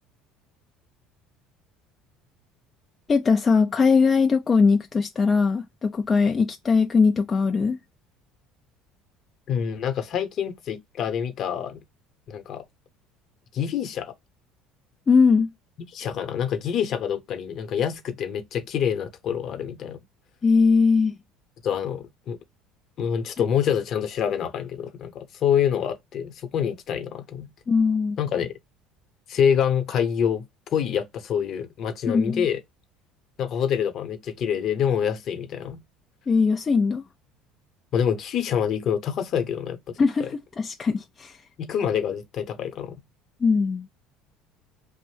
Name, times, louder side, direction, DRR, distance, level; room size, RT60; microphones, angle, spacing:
voice 1, 3.1-7.8 15.1-15.5 20.4-21.2 27.7-28.2 32.1-32.5 36.3-37.0 40.0-41.4 43.4-43.9, left 5 dB, 30° left, 0.3 m, -20 dB
voice 2, 9.5-11.8 12.3-12.6 13.5-14.1 15.9-20.0 21.6-22.4 23.0-27.5 28.2-28.5 29.3-30.4 30.7-32.6 33.4-35.8 37.9-39.9 40.2-40.3 41.6-42.9, left 8 dB, 55° left, 0.8 m, -26 dB
2.6 x 2.0 x 3.1 m
supercardioid pair, 95°, 0 cm